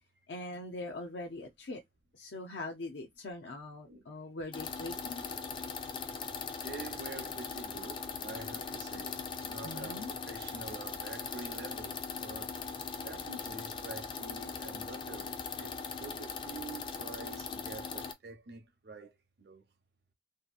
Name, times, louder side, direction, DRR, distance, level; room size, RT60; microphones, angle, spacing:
voice 1, 0.3-1.8 2.1-5.2 9.6-10.1, left 2 dB, 80° left, 0.5 m, -42 dB
sound 1, 4.5-18.1, left 5 dB, 30° left, 0.3 m, -40 dB
voice 2, 6.6-12.6 13.0-15.7 16.0-19.6, right 3 dB, 65° right, 0.6 m, -47 dB
2.7 x 2.4 x 2.3 m
head